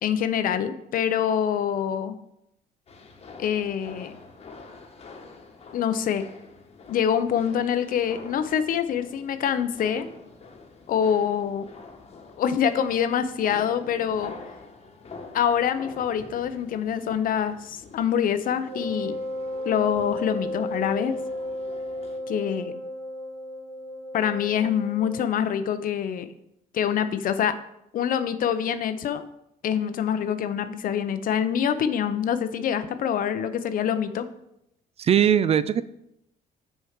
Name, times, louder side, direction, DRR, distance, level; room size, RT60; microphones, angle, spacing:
voice 1, 0.0-2.1 3.4-4.1 5.7-6.2 6.9-10.1 10.9-11.7 12.4-14.3 15.3-19.2 19.6-21.2 22.3-22.7 24.1-26.3 26.7-27.6 27.9-29.2 29.6-34.3, left 8 dB, 55° left, 11 dB, 0.7 m, -25 dB
sound 1, 2.9-22.2, left 4 dB, 35° left, 1.2 m, -46 dB
Wind instrument woodwind instrument, 18.7-25.3, left 1 dB, 85° right, 1.7 m, -34 dB
voice 2, 35.0-35.8, right 9 dB, 35° right, 15 dB, 0.3 m, -20 dB
6.5 x 4.5 x 6.5 m, 0.80 s
cardioid pair, 110°, 17 cm